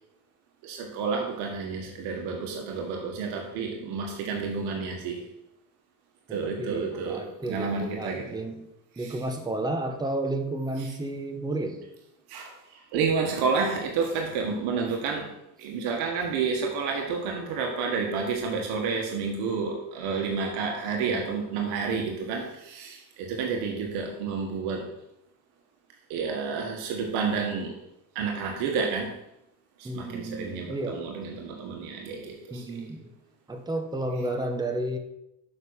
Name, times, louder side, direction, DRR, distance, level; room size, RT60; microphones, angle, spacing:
voice 1, 0.6-5.3 6.3-8.4 8.9-9.2 10.8-10.9 12.3-24.9 26.1-27.8 28.1-29.2 29.8-32.8, right 5 dB, 80° right, 1 dB, 1.6 m, -30 dB
voice 2, 6.3-8.7 9.0-11.8 29.8-31.0 32.5-33.1 33.5-35.0, right 1 dB, 10° right, 3 dB, 1.3 m, -32 dB
6.6 x 5.5 x 6.4 m, 0.84 s
cardioid pair, 110°, 38 cm